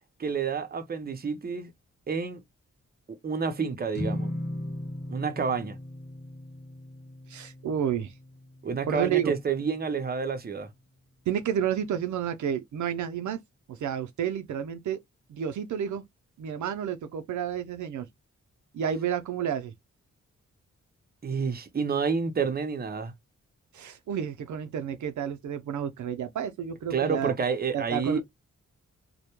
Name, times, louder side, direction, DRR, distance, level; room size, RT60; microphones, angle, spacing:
voice 1, 0.2-1.7 2.1-2.4 3.1-4.3 5.1-5.8 8.6-10.7 21.2-23.1 26.9-28.2, right 5 dB, 30° right, 0.6 m, -29 dB
sound 1, 3.9-10.4, left 1 dB, 35° left, 0.8 m, -38 dB
voice 2, 7.3-8.1 8.9-9.3 11.3-13.4 13.7-15.0 15.3-16.0 16.4-18.1 18.7-19.7 23.7-27.3 27.7-28.2, right 9 dB, 75° right, 0.5 m, -30 dB
2.2 x 2.1 x 2.9 m
cardioid pair, 80°, 30 cm